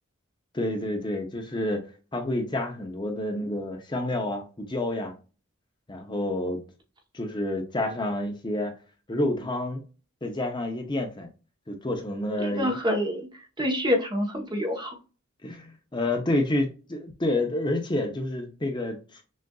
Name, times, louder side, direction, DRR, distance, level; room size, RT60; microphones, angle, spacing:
voice 1, 0.5-1.8 2.1-5.1 5.9-6.6 7.1-8.7 9.1-9.8 10.2-11.3 11.7-12.8 15.4-19.2, left 1 dB, 20° left, 0.7 m, -29 dB
voice 2, 12.4-13.3 13.6-15.0, left 1 dB, 20° right, 0.9 m, -26 dB
6.2 x 2.5 x 2.3 m
head